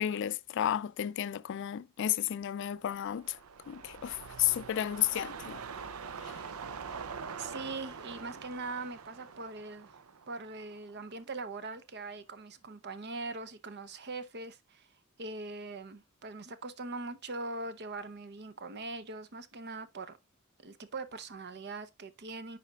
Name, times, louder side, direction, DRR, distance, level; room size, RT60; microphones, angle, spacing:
voice 1, 0.0-3.4 3.7-5.6 6.2-6.3, left 11 dB, 60° left, 0.3 m, -32 dB
sound 1, 2.8-11.3 11.6-11.7, right 5 dB, 90° right, 0.6 m, -44 dB
voice 2, 7.3-10.0 10.3-14.9 15.2-20.2 20.6-22.6, right 3 dB, 55° right, 0.8 m, -41 dB
10.5 x 4.2 x 2.3 m
head